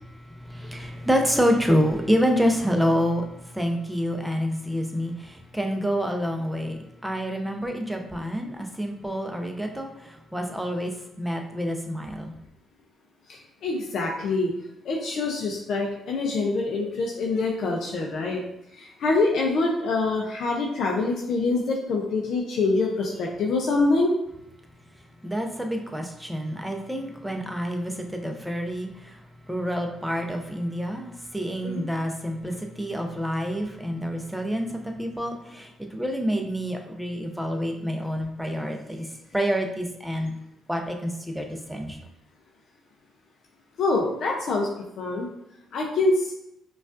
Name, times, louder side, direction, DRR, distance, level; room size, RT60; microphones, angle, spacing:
voice 1, 0.1-12.3 25.2-40.3 40.7-42.0, equal, 5° right, 3 dB, 0.6 m, -28 dB
voice 2, 13.3-14.5 14.8-18.4 18.7-24.1 31.6-31.8 43.8-44.7 45.0-45.3 45.7-46.3, left 3 dB, 70° left, -1 dB, 0.5 m, -25 dB
5.0 x 2.3 x 2.5 m, 0.81 s
cardioid pair, 90°, 0 cm